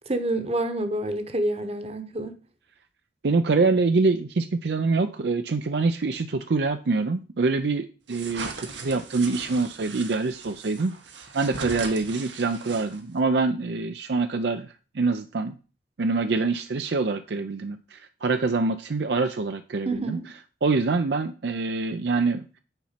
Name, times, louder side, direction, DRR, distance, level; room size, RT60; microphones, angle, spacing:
voice 1, 0.1-2.3 19.9-20.3, right 1 dB, 35° right, 1.0 m, -28 dB
voice 2, 3.2-10.9 11.3-14.7 14.9-15.6 16.0-20.2 20.6-22.5, right 3 dB, 65° right, 0.5 m, -25 dB
sound 1, 8.1-13.2, right 4 dB, 85° right, 1.4 m, -39 dB
8.9 x 4.3 x 5.7 m
head